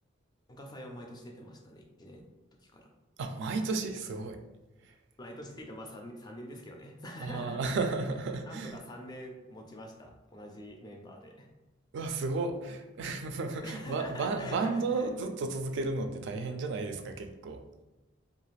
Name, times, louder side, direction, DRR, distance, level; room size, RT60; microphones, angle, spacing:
voice 1, 0.5-2.2 2.6-2.9 5.2-7.7 8.5-11.5 13.6-15.1, left 1 dB, 20° left, 2 dB, 0.4 m, -45 dB
voice 2, 3.2-4.4 4.8-5.0 7.2-8.8 11.9-17.6, right 3 dB, 65° right, 6 dB, 0.3 m, -33 dB
2.4 x 2.4 x 3.1 m, 1.0 s
head